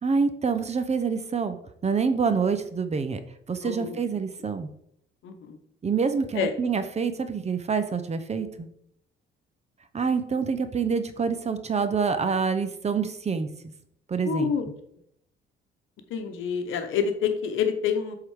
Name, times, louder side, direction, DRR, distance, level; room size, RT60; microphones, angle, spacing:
voice 1, 0.0-1.6 1.8-3.2 3.5-4.7 5.8-8.7 9.9-13.5 14.1-14.5, right 5 dB, 35° right, 10 dB, 0.8 m, -26 dB
voice 2, 3.6-4.0 5.2-5.6 6.3-6.5 14.3-14.7 16.1-18.2, left 7 dB, 80° left, 7 dB, 1.0 m, -27 dB
7.8 x 3.8 x 4.8 m, 0.71 s
cardioid pair, 90°, 20 cm